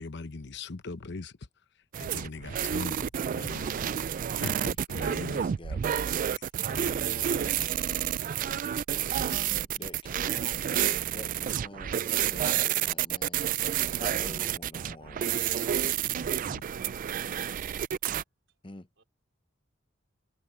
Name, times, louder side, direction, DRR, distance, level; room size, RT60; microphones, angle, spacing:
voice 1, 0.0-1.4 2.0-3.9 4.4-5.5 6.7-7.6 16.0-16.6, left 3 dB, 65° left, 0.9 m, -40 dB
sound 1, 1.9-18.2, right 10 dB, 45° right, 0.3 m, -30 dB
voice 2, 3.7-4.3 5.1-6.3 9.1-15.5 18.6-18.9, left 2 dB, 25° left, 1.0 m, -47 dB
voice 3, 16.4-17.0 18.5-18.6 19.0-19.1, right 4 dB, 75° right, 3.8 m, -59 dB
head